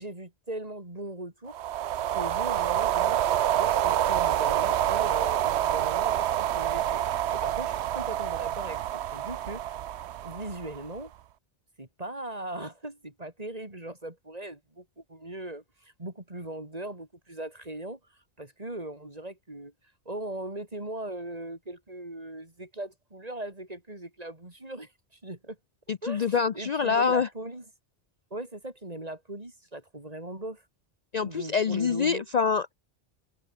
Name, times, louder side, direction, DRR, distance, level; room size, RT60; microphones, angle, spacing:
voice 1, 0.0-1.6 2.1-9.8 10.2-11.1 11.8-19.7 20.1-25.6 26.0-27.6 28.3-30.6 31.2-32.2, right 1 dB, 35° right, 3.9 m, -39 dB
sound 1, 1.5-11.0, right 11 dB, 85° right, 0.9 m, -27 dB
voice 2, 25.9-27.3 31.1-32.7, left 6 dB, 45° left, 0.6 m, -25 dB
omnidirectional pair, 1.1 m